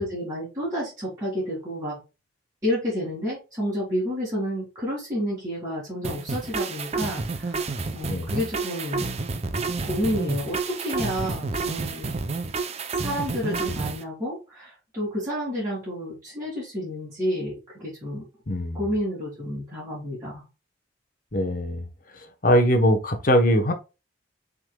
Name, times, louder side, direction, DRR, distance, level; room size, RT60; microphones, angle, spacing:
voice 1, 0.0-2.0 2.6-9.1 9.8-12.1 12.9-18.2 18.7-20.4, equal, 20° right, 2.0 m, -30 dB
sound 1, 6.0-14.0, right 3 dB, 35° right, 0.5 m, -30 dB
voice 2, 18.5-18.8 21.3-21.8 22.4-23.7, equal, 50° left, 0.9 m, -21 dB
5.9 x 3.8 x 2.2 m
head